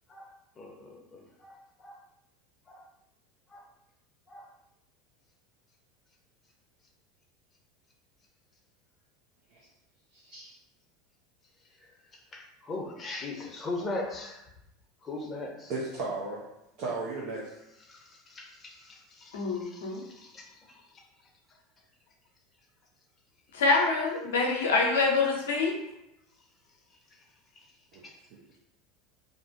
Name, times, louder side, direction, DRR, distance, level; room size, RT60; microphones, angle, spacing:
voice 1, 0.6-2.0 2.7-2.8 3.5-3.6 4.3-4.5 12.3-14.4 15.0-15.7 17.9-20.8 28.0-28.1, left 2 dB, 30° left, 0 dB, 0.6 m, -40 dB
voice 2, 10.1-10.5 15.7-16.4 16.8-17.5 27.9-28.0, right 3 dB, 55° right, -4 dB, 0.6 m, -35 dB
voice 3, 19.3-20.0 23.5-25.8, left 3 dB, 75° left, 1 dB, 0.5 m, -26 dB
2.5 x 2.1 x 2.5 m, 0.86 s
hypercardioid pair, 80°, 0 cm